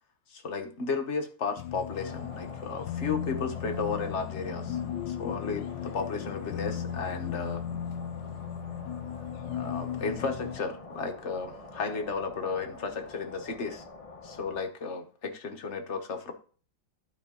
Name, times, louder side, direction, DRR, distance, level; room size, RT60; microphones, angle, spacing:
voice 1, 0.3-4.8 5.1-7.6 9.5-13.8 14.2-16.3, left 4 dB, 45° left, 5 dB, 1.1 m, -34 dB
sound 1, 1.6-10.6, left 9 dB, 75° left, 1.2 m, -36 dB
sound 2, 1.9-14.6, left 3 dB, 25° left, 0.7 m, -45 dB
12.0 x 4.9 x 3.7 m, 0.41 s
omnidirectional pair, 2.1 m